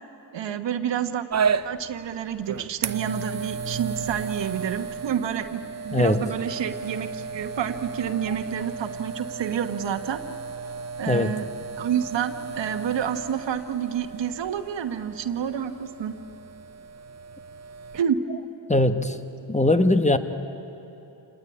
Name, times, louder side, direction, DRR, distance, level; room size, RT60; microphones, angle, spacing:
voice 1, 0.3-1.2 1.6-10.2 11.0-11.5 11.7-16.1 17.9-18.2, right 8 dB, 80° right, 8 dB, 1.3 m, -29 dB
sound 1, 1.3-18.0, right 5 dB, 40° right, 0.7 m, -34 dB
voice 2, 5.9-6.2 11.1-11.4 18.7-19.2 19.5-20.2, left 1 dB, 15° left, 9 dB, 1.2 m, -20 dB
27.5 x 19.0 x 9.8 m, 2.9 s
cardioid pair, 65°, 43 cm